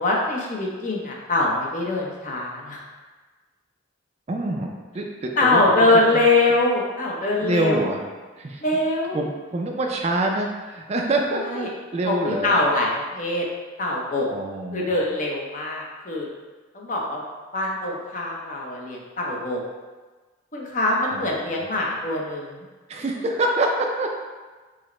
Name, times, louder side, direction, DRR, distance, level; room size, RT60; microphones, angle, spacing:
voice 1, 0.0-2.8 5.4-7.9 8.6-9.3 11.3-11.7 12.1-13.4 13.8-14.3 14.7-16.3 16.7-17.2 17.5-19.6 20.5-22.6, left 2 dB, 40° left, -2 dB, 0.7 m, -23 dB
voice 2, 4.3-5.6 7.4-8.0 8.4-8.6 9.1-12.5 14.3-14.9 21.1-21.2 22.9-24.1, right 2 dB, 35° right, 1 dB, 0.3 m, -25 dB
4.8 x 2.1 x 4.2 m, 1.3 s
head